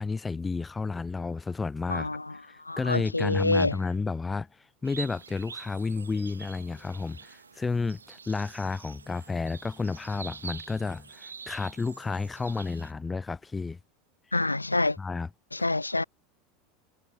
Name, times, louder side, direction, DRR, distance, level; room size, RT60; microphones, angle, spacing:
voice 1, 0.0-2.1 2.5-4.5 4.8-13.8 15.0-15.3, left 4 dB, 15° left, 3.4 m, -31 dB
voice 2, 1.9-2.2 2.7-3.7 14.3-15.0 15.6-16.0, left 2 dB, 85° left, 0.4 m, -26 dB
sound 1, 4.8-12.9, right 5 dB, 80° right, 7.6 m, -46 dB
figure-of-eight pair, 80°, 0 cm